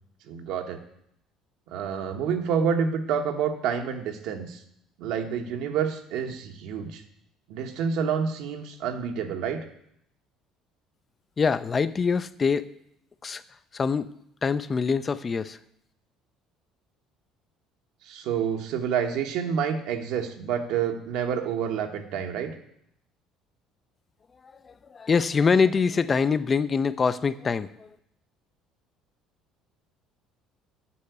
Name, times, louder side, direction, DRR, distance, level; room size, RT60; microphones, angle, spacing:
voice 1, 0.3-0.8 1.7-4.6 5.0-7.0 7.5-9.6 18.1-22.5, right 7 dB, 75° right, 5 dB, 1.2 m, -28 dB
voice 2, 11.4-12.7 13.2-13.4 13.7-14.1 14.4-15.6 24.6-27.9, left 5 dB, 25° left, 14 dB, 0.4 m, -24 dB
8.4 x 5.8 x 8.0 m, 0.74 s
cardioid pair, 125°, 0 cm